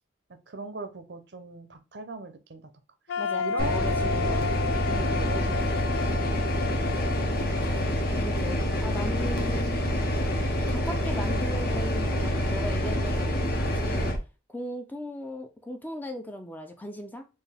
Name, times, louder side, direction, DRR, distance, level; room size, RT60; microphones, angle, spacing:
voice 1, 0.5-2.7 3.1-4.5 4.9-5.8, right 3 dB, 60° right, 9 dB, 0.6 m, -39 dB
sound 1, 3.1-9.0, left 6 dB, 80° left, 0.3 m, -33 dB
voice 2, 3.2-4.7 8.2-9.8 10.7-14.1 14.5-17.3, left 1 dB, 10° left, 6 dB, 0.5 m, -38 dB
sound 2, 3.6-14.2, equal, 50° left, 1.1 m, -27 dB
4.6 x 2.7 x 3.3 m, 0.29 s
head